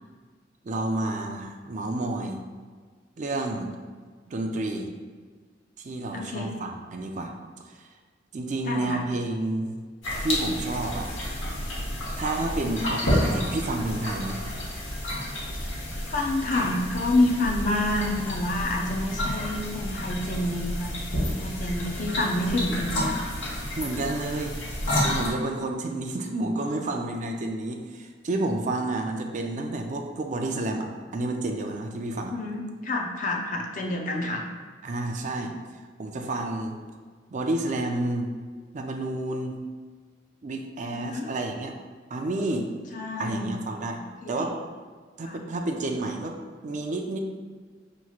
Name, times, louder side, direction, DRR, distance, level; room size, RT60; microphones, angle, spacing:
voice 1, 0.6-2.4 3.2-3.7 4.3-4.9 5.8-7.3 7.6-7.9 8.3-9.7 10.2-11.1 12.2-14.4 23.8-24.6 25.0-32.3 34.8-35.5 36.0-36.8 37.3-38.4 38.7-39.6 40.4-41.8 42.1-42.7 43.2-44.0 44.3-44.6 45.2-46.4 46.6-47.2, right 2 dB, 40° right, 3 dB, 0.4 m, -30 dB
voice 2, 6.1-6.5 8.7-9.0 15.5-15.8 16.1-20.9 21.3-23.1 32.2-34.4 40.9-41.3 42.9-43.7 44.2-44.5 45.2-45.4, left 2 dB, 45° left, 0 dB, 0.5 m, -28 dB
sound 1, 10.0-25.3, left 1 dB, 90° left, 1.1 m, -30 dB
5.7 x 3.0 x 2.4 m, 1.5 s
head